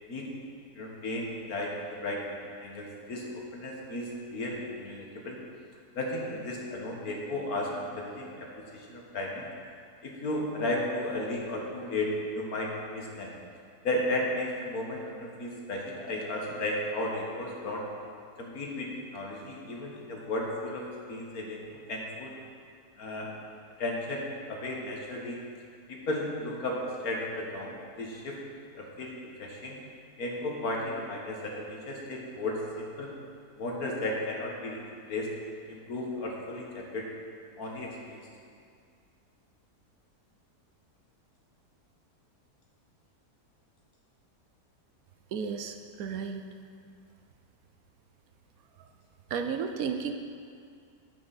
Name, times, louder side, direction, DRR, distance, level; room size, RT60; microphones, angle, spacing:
voice 1, 0.8-2.2 2.6-5.4 5.9-9.5 10.0-13.3 13.8-17.8 18.4-21.6 21.9-22.3 23.0-23.3 23.8-25.4 25.9-28.4 28.7-29.8 30.2-33.1 33.6-34.8 35.1-35.3 35.7-37.1 37.6-38.3, left 1 dB, 65° left, -1 dB, 1.9 m, -34 dB
voice 2, 45.3-46.4 49.3-50.1, right 6 dB, 70° right, 6 dB, 1.0 m, -33 dB
11.0 x 8.7 x 4.1 m, 2.3 s
omnidirectional pair, 1.7 m